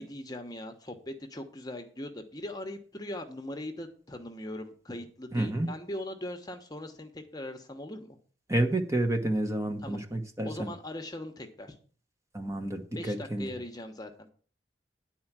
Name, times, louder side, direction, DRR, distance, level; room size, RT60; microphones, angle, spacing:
voice 1, 0.0-8.2 9.8-10.0 10.4-11.8 12.9-14.3, left 1 dB, 20° left, 5 dB, 1.1 m, -40 dB
voice 2, 5.3-5.7 8.5-10.7 12.3-13.5, right 1 dB, 15° right, 5 dB, 1.1 m, -30 dB
10.5 x 4.5 x 7.4 m, 0.42 s
head